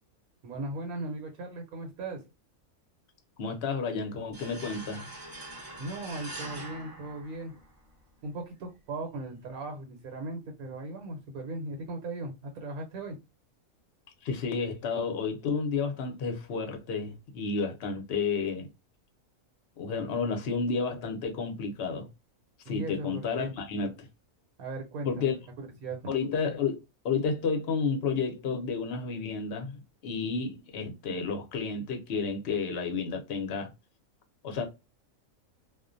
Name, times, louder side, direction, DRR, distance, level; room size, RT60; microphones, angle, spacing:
voice 1, 0.4-2.2 5.8-7.6 8.2-13.2 22.7-23.5 24.6-26.1, right 2 dB, 80° right, 1.1 m, -38 dB
voice 2, 3.4-5.1 14.2-18.7 19.8-22.1 22.7-24.1 25.0-25.3 26.1-26.8 27.0-33.7 34.4-34.7, left 5 dB, 55° left, 0.7 m, -31 dB
sound 1, 4.3-7.9, right 1 dB, 25° right, 0.5 m, -43 dB
2.4 x 2.1 x 2.5 m
omnidirectional pair, 1.5 m